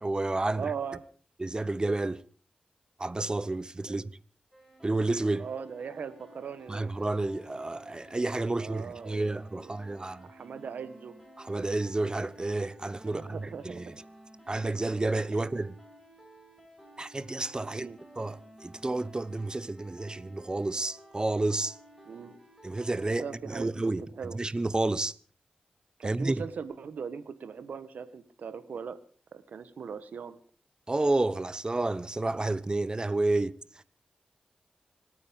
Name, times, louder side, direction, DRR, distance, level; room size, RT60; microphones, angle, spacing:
voice 1, 0.0-0.7 1.4-2.2 3.0-4.0 4.8-5.5 6.7-10.3 11.4-13.9 14.5-15.7 17.0-17.9 18.2-21.8 22.6-24.0 24.3-25.1 26.0-26.4 30.9-33.6, right 2 dB, 30° right, 1.0 m, -30 dB
voice 2, 0.5-1.0 3.9-4.1 5.4-6.8 8.6-9.7 10.0-11.1 13.0-14.0 15.3-15.4 17.7-18.0 22.0-22.4 23.2-24.4 26.0-29.0 29.3-30.4, right 6 dB, 90° right, 1.5 m, -40 dB
sound 1, 4.5-23.2, right 1 dB, 5° left, 6.9 m, -54 dB
26.0 x 9.6 x 5.3 m
cardioid pair, 55°, 3 cm